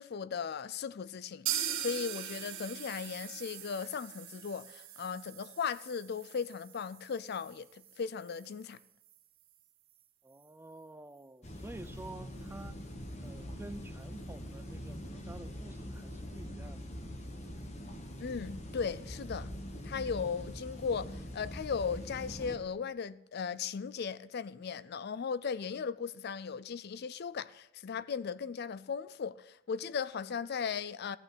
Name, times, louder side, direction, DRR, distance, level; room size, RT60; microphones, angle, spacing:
voice 1, 0.0-8.8 18.2-19.5 19.8-31.2, left 6 dB, 50° left, 0.4 m, -37 dB
sound 1, 1.5-9.2 9.5-9.6 9.9-10.0 10.4-10.5, right 10 dB, 75° right, 2.0 m, -42 dB
voice 2, 10.2-12.8 13.2-16.9, right 2 dB, 10° right, 0.4 m, -49 dB
sound 2, 11.4-22.6, equal, 35° left, 1.3 m, -43 dB
14.5 x 9.1 x 6.0 m
head